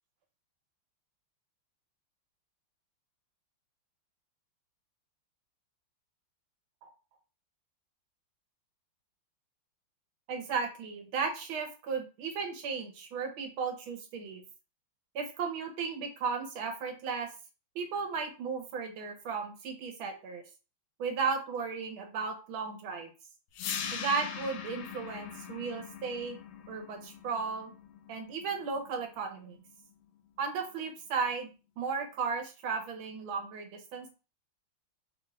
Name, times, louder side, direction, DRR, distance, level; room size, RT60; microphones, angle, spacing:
voice 1, 10.3-14.4 15.1-17.3 17.7-20.4 21.0-23.1 23.9-26.4 26.7-27.7 28.1-29.6 30.4-31.5 31.8-34.1, right 5 dB, 80° right, 3 dB, 1.7 m, -35 dB
sound 1, 23.5-29.6, left 7 dB, 85° left, 1.4 m, -41 dB
4.2 x 2.5 x 3.1 m, 0.33 s
omnidirectional pair, 2.3 m